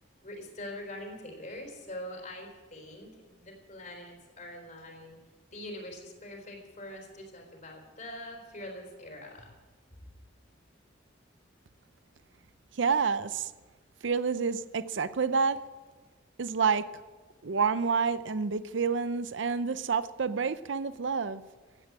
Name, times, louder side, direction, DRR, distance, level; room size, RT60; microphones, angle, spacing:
voice 1, 0.2-5.2 5.5-9.5, left 1 dB, 40° left, 2 dB, 3.9 m, -43 dB
voice 2, 12.8-13.5 14.0-15.6 16.4-16.9 17.4-21.4, right 5 dB, 80° right, 14 dB, 0.6 m, -28 dB
16.0 x 9.6 x 8.6 m, 1.3 s
head